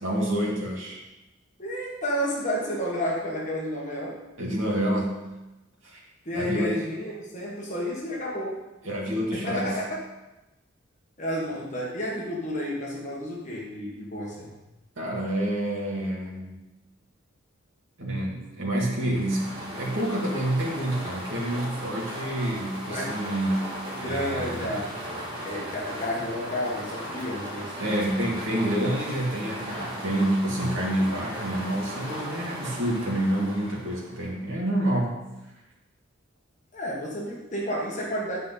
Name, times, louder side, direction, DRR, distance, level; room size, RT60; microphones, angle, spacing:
voice 1, 0.0-1.0 4.4-5.1 5.8-6.0 6.3-6.8 8.8-9.8 15.0-16.7 18.0-23.7 24.0-24.8 27.8-35.2, right 1 dB, 65° right, -3 dB, 2.2 m, -28 dB
voice 2, 1.6-4.2 6.2-8.6 9.3-10.0 11.2-14.6 22.9-23.1 23.9-24.9 25.4-27.9 36.7-38.4, equal, 35° left, -3 dB, 1.4 m, -31 dB
sound 1, 18.9-34.3, equal, 25° right, 2.0 m, -37 dB
9.9 x 5.2 x 4.1 m, 1.0 s
head